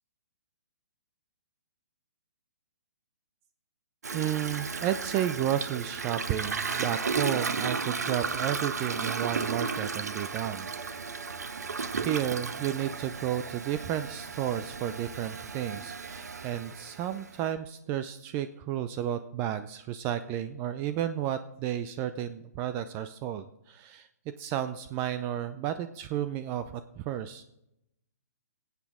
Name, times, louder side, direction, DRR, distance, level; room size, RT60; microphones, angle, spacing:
Toilet flush, 4.0-17.5, right 5 dB, 80° right, 0.9 m, -34 dB
voice 1, 4.1-11.2 11.9-24.1 24.4-27.4, right 11 dB, 25° right, 11 dB, 0.4 m, -32 dB
22.5 x 8.2 x 3.6 m, 0.84 s
hypercardioid pair, 135°, 9 cm